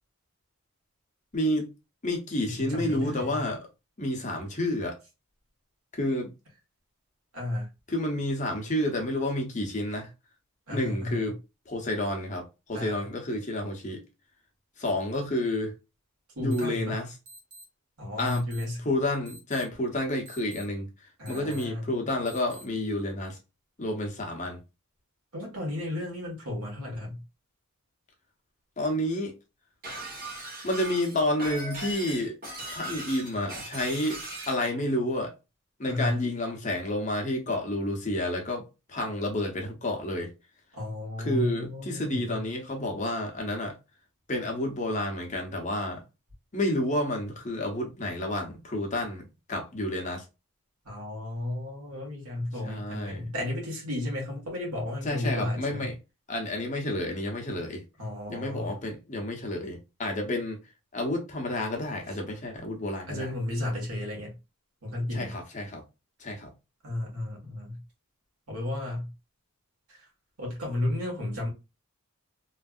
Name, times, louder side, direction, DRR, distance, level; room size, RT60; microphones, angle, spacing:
voice 1, 1.3-1.7 2.0-3.7 4.0-5.0 5.9-6.3 7.9-10.1 10.7-11.4 11.7-14.0 14.8-15.7 16.4-17.1 18.2-18.4 18.8-23.4 23.8-24.6 28.8-29.3 30.6-32.4 32.7-34.2 34.5-35.3 35.8-40.3 41.2-43.8 44.3-46.0 46.5-50.2 52.6-53.3 55.0-55.9 56.3-57.8 58.3-60.6 60.9-63.3 65.1-65.8 66.2-66.5, left 1 dB, 35° left, 0.8 m, -30 dB
voice 2, 2.5-3.4 7.3-7.7 10.7-11.3 12.7-13.0 16.3-17.0 18.0-18.8 21.2-21.9 25.3-27.2 35.8-36.2 40.7-42.4 50.8-55.9 58.0-58.7 63.1-64.4 64.8-65.3 66.8-67.8 68.5-69.1 69.9-70.0 70.4-71.5, left 1 dB, 90° right, 1.5 m, -33 dB
sound 1, 16.5-16.6 17.2-17.6 18.2-18.6 19.2-19.6 20.2-20.6 21.2-21.6 22.2-22.6, right 1 dB, 70° right, 1.3 m, -48 dB
Shatter, 29.8-34.6, right 1 dB, 40° right, 1.1 m, -38 dB
3.1 x 2.6 x 2.4 m
head